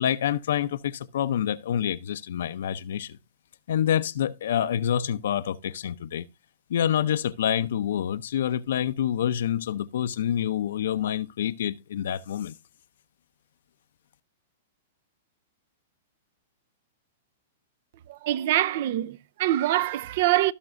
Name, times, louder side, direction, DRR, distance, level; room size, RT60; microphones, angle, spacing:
voice 1, 0.0-3.2 3.7-6.2 6.7-12.5, left 10 dB, 75° left, 0.6 m, -27 dB
voice 2, 18.1-20.5, right 14 dB, 55° right, 0.5 m, -24 dB
16.5 x 5.9 x 2.5 m
hypercardioid pair, 135°, 0 cm